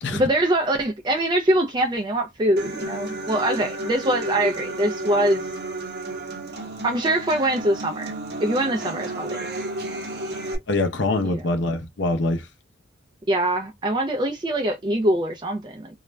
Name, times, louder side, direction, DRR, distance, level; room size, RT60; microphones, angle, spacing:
voice 1, 0.1-5.5 6.8-9.5 11.2-11.4 13.3-15.9, right 1 dB, 20° right, 0.3 m, -23 dB
Human voice / Acoustic guitar, 2.6-10.5, right 2 dB, 50° right, 0.8 m, -32 dB
voice 2, 10.7-12.5, left 2 dB, 55° left, 0.6 m, -24 dB
2.3 x 2.1 x 3.2 m
head